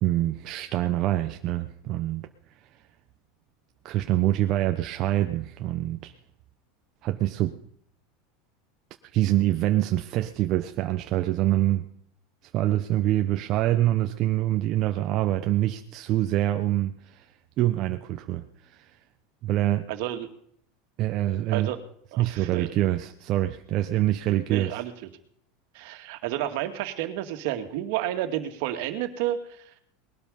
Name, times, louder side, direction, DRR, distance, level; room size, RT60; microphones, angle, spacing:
voice 1, 0.0-2.3 3.8-6.1 7.0-7.6 9.1-11.9 12.5-17.2 17.6-18.4 18.7-18.8 19.4-19.9 21.0-21.7 22.2-24.8, right 14 dB, 45° right, 6 dB, 0.9 m, -25 dB
voice 2, 19.9-20.3 21.5-21.8 22.1-22.7 24.5-24.9 25.7-29.8, right 12 dB, 65° right, 7 dB, 2.2 m, -31 dB
20.5 x 12.0 x 5.5 m, 0.65 s
supercardioid pair, 130°, 0 cm